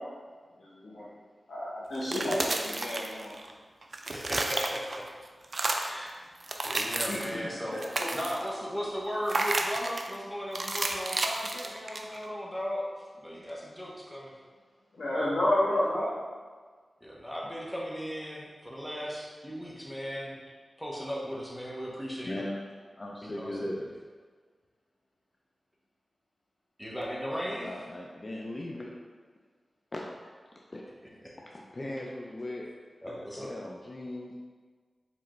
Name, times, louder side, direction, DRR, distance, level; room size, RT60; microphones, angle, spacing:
voice 1, 0.6-1.1 1.5-3.4 7.0-7.4 7.7-8.1 15.0-16.1 33.0-33.2, left 1 dB, 80° left, -8 dB, 1.1 m, -30 dB
sound 1, 2.0-3.5 3.8-5.1 5.4-6.0 6.4-7.4 7.7-8.5 9.3-10.1 10.6-12.3, right 2 dB, 50° right, 0.4 m, -32 dB
voice 2, 4.1-5.0 5.7-6.1 6.6-7.8 8.1-14.3 17.0-20.4 20.8-22.4 23.2-23.7 26.8-27.7 33.0-33.5, equal, 5° left, -4 dB, 0.9 m, -37 dB
voice 3, 22.2-22.6 23.0-23.9 27.3-28.9 29.9-30.0 30.7-30.8 31.4-32.7 33.4-34.3, left 1 dB, 40° left, -1 dB, 0.4 m, -38 dB
4.8 x 3.4 x 3.1 m, 1.5 s
wide cardioid pair, 70°, 0 cm